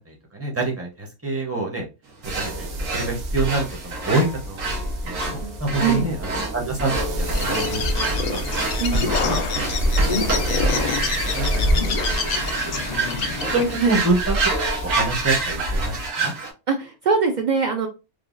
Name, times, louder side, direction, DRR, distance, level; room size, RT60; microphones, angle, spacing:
voice 1, 0.1-1.9 2.4-7.8 8.3-8.4 8.9-9.4 10.0-11.8 12.1-12.2 12.5-12.8 13.5-14.4 14.8-16.3, right 2 dB, 15° right, -1 dB, 0.5 m, -27 dB
sound 1, 2.2-16.1, equal, 60° right, 0.8 m, -28 dB
sound 2, 2.2-16.5, right 3 dB, 90° right, 1.3 m, -28 dB
Bird, 7.2-13.8, left 5 dB, 85° left, 0.3 m, -27 dB
voice 2, 16.7-17.9, right 5 dB, 75° right, 3 dB, 0.4 m, -22 dB
3.2 x 2.2 x 2.4 m, 0.28 s
omnidirectional pair, 1.3 m